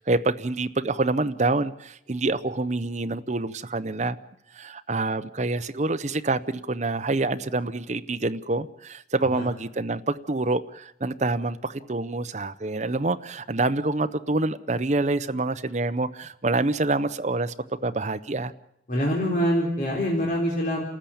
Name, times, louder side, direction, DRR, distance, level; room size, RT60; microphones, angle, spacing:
voice 1, 0.0-4.2 4.5-17.5 17.8-18.5, right 2 dB, 40° right, 12 dB, 0.8 m, -26 dB
voice 2, 18.9-20.8, equal, 45° left, -3 dB, 4.1 m, -25 dB
29.5 x 13.5 x 8.7 m, 0.78 s
head